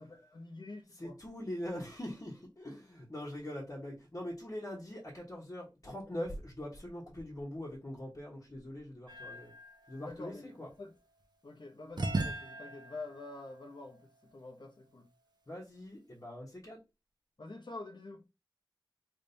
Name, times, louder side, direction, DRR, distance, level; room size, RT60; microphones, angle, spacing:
voice 1, 0.0-1.2 10.0-10.5 10.8-10.9 11.4-15.1 17.4-18.2, left 2 dB, 70° left, 0.9 m, -47 dB
voice 2, 0.9-9.5 9.9-10.7 15.5-16.8, left 1 dB, 45° left, 1.2 m, -42 dB
sound 1, 9.1-11.2 12.0-14.9, right 2 dB, 65° right, 0.7 m, -40 dB
3.5 x 3.3 x 2.7 m
wide cardioid pair, 55°, 8 cm